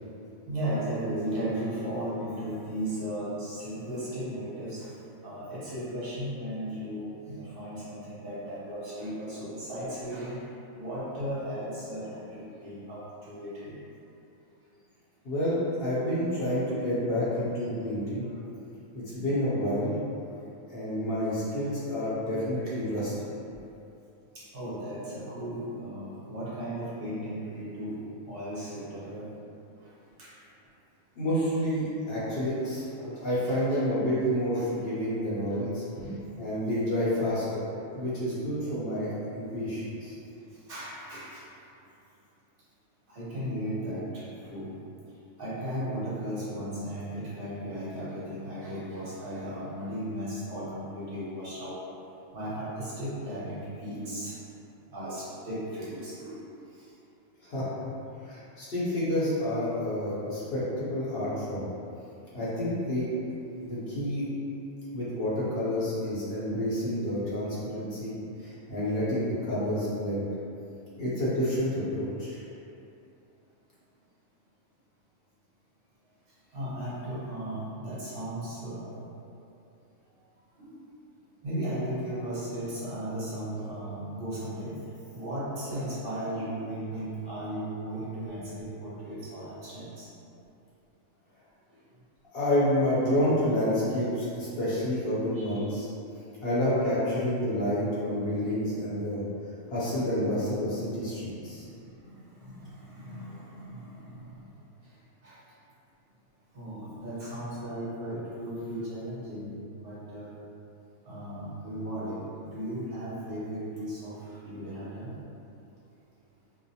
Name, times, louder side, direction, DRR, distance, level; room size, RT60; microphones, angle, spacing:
voice 1, 0.5-4.9 5.2-10.4 10.8-13.7 20.2-20.4 24.3-27.9 28.3-29.3 30.2-30.3 32.6-32.7 33.0-33.2 33.4-33.8 34.5-34.6 40.7-41.4 43.1-44.7 45.4-51.8 52.3-54.4 54.9-56.4 56.7-56.8 61.6-61.8 68.2-68.3 76.5-79.1 80.6-80.7 81.4-84.7 85.1-90.1 95.3-95.7 101.4-104.4 105.2-105.4 106.5-109.5 109.8-110.3 111.0-115.1, right 1 dB, 50° right, -10 dB, 0.9 m, -36 dB
voice 2, 15.2-18.2 18.9-20.0 20.7-23.3 31.2-32.8 33.2-37.6 37.9-40.2 57.4-57.7 58.2-61.7 62.3-63.1 63.6-64.3 64.9-70.3 71.0-72.4 92.3-95.9 96.4-99.2 99.7-101.6, equal, 50° left, -10 dB, 0.9 m, -29 dB
2.5 x 2.1 x 2.7 m, 2.7 s
omnidirectional pair, 1.5 m